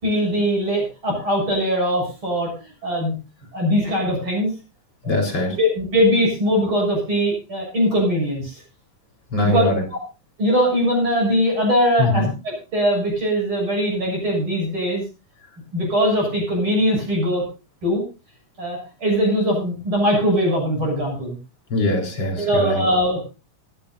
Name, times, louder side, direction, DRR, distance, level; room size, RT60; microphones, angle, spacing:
voice 1, 0.0-2.5 2.8-3.2 3.5-4.5 5.0-5.2 5.5-8.6 9.4-9.6 10.4-15.0 15.7-17.4 17.8-18.0 18.6-21.4 22.4-23.2, equal, 35° right, 0 dB, 7.8 m, -21 dB
voice 2, 5.1-5.6 9.3-9.8 12.0-12.3 21.7-22.8, left 2 dB, 35° left, 3 dB, 4.7 m, -21 dB
25.5 x 11.0 x 2.6 m, 0.31 s
omnidirectional pair, 3.9 m